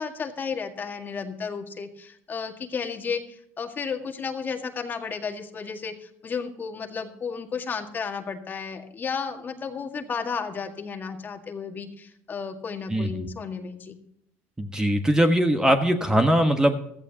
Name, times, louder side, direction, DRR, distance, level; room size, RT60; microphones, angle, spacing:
voice 1, 0.0-14.0, left 5 dB, 30° left, 4 dB, 1.8 m, -33 dB
voice 2, 12.9-13.3 14.6-16.9, equal, 10° right, 6 dB, 1.3 m, -21 dB
16.0 x 14.0 x 2.9 m, 0.73 s
supercardioid pair, 105°, 6 cm